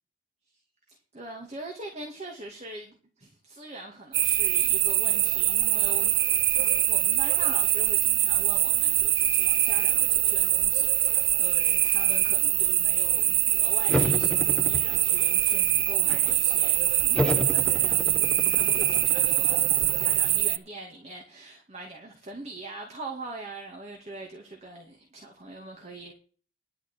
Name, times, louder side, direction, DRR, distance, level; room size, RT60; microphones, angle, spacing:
voice 1, 0.9-6.3 6.5-26.1, right 2 dB, 30° right, 2.5 m, -42 dB
sound 1, 4.1-20.6, right 13 dB, 60° right, 0.7 m, -23 dB
sound 2, 13.9-15.4 15.7-16.5 17.1-20.4, equal, 5° left, 0.9 m, -32 dB
11.5 x 5.7 x 8.5 m
head